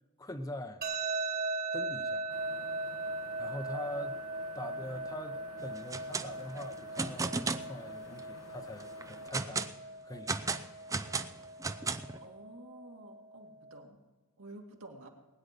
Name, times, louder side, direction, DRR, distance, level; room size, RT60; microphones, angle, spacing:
voice 1, 0.2-0.8 1.7-2.3 3.4-4.2 4.5-10.6, left 1 dB, 15° left, 7 dB, 0.8 m, -43 dB
sound 1, 0.8-13.8, right 2 dB, 40° right, 1.5 m, -39 dB
sound 2, 2.3-9.3, left 2 dB, 80° left, 1.3 m, -53 dB
sound 3, 5.8-6.3 6.6-7.7 8.2-8.3 8.8-9.7 10.3-12.2, right 3 dB, 15° right, 0.5 m, -34 dB
voice 2, 12.2-14.0 14.4-15.1, right 2 dB, 65° right, 1 dB, 2.3 m, -51 dB
20.5 x 9.8 x 5.2 m, 1.2 s
head